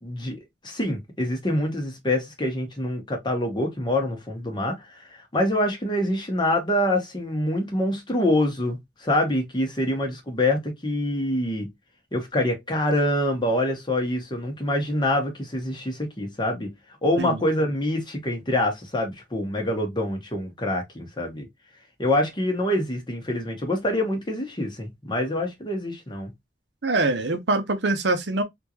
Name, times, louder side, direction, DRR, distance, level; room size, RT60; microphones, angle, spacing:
voice 1, 0.0-5.0 5.3-11.7 12.1-16.7 17.0-21.5 22.0-26.3, left 1 dB, 25° left, 1.1 m, -25 dB
voice 2, 26.8-28.4, right 2 dB, 75° right, 0.8 m, -24 dB
3.6 x 2.5 x 2.9 m
head